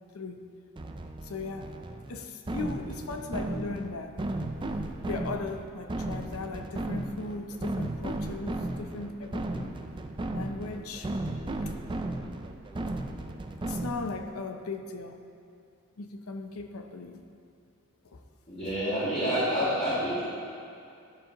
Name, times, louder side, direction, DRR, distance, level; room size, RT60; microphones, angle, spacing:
sound 1, 0.8-14.3, right 2 dB, 20° right, 0.4 m, -35 dB
voice 1, 1.2-1.7 2.1-4.3 5.0-9.8 10.3-11.1 11.6-11.7 13.6-15.2 16.0-17.2 18.0-18.2, left 3 dB, 70° left, 6 dB, 0.6 m, -38 dB
voice 2, 18.5-20.2, equal, 35° left, -13 dB, 2.3 m, -28 dB
13.0 x 7.1 x 2.9 m, 2.5 s
head